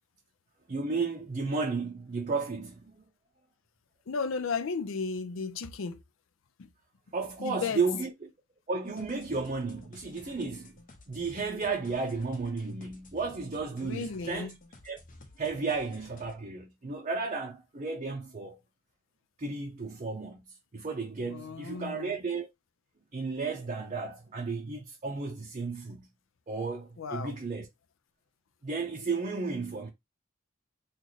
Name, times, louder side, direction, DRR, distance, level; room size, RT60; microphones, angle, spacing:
voice 1, 0.7-3.0 7.1-8.3 8.7-10.8 11.1-14.5 14.8-15.0 15.4-18.6 19.4-20.4 20.7-22.5 23.1-26.1 26.5-27.7 28.6-29.9, right 4 dB, 35° right, 0.5 m, -33 dB
voice 2, 4.1-6.0 6.6-6.7 7.4-7.8 13.8-14.6 21.3-22.2 27.0-27.3, left 5 dB, 75° left, 0.5 m, -34 dB
sound 1, 8.8-16.4, left 2 dB, 40° left, 0.8 m, -53 dB
3.1 x 2.4 x 3.9 m
head